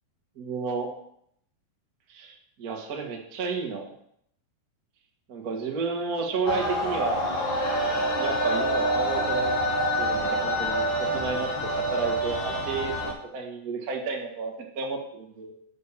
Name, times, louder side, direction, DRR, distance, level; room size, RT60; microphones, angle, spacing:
voice 1, 0.4-0.9 2.1-3.9 5.3-7.2 8.1-9.5 10.0-13.0 13.3-15.5, right 4 dB, 50° right, 0 dB, 1.0 m, -31 dB
sound 1, 6.5-13.1, equal, 50° left, 1.5 m, -26 dB
7.1 x 6.6 x 6.7 m, 0.70 s
omnidirectional pair, 4.3 m